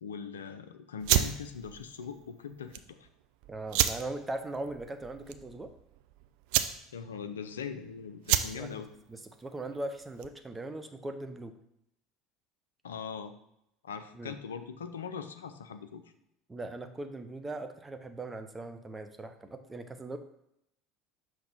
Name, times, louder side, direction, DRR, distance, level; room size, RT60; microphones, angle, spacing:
voice 1, 0.0-3.1 6.9-8.9 12.8-13.3 13.8-16.0, left 6 dB, 80° left, 9 dB, 0.4 m, -41 dB
sound 1, 1.0-10.5, right 12 dB, 60° right, 0.3 m, -32 dB
voice 2, 3.5-5.7 8.5-8.8 9.1-11.5 14.1-14.4 16.5-20.2, right 2 dB, 15° right, 7 dB, 0.7 m, -39 dB
6.0 x 3.1 x 5.1 m, 0.80 s
figure-of-eight pair, 70°, 0 cm